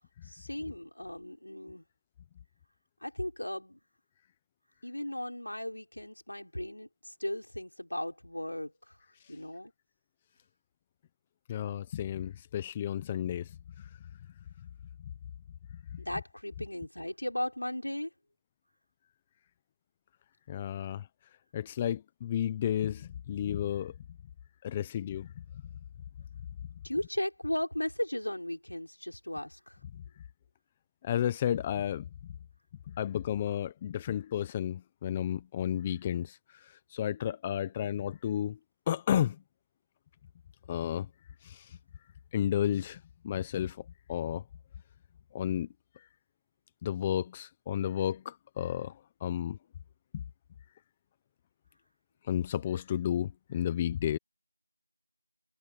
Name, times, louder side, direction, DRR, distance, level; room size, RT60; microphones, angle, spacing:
voice 1, 0.3-1.8 3.0-3.8 4.8-8.9 9.3-9.7 16.0-18.1 26.8-29.8, left 1 dB, 75° left, 5.3 m, -36 dB
voice 2, 11.5-13.9 15.0-15.1 20.5-21.1 21.5-24.0 24.6-25.3 31.0-32.1 32.9-38.6 38.9-39.4 40.7-41.1 41.4-41.8 42.3-44.4 45.3-45.7 46.0-46.1 46.8-49.6 50.1-50.2 52.2-54.2, left 10 dB, 5° left, 0.8 m, -32 dB
figure-of-eight pair, 180°, 0 cm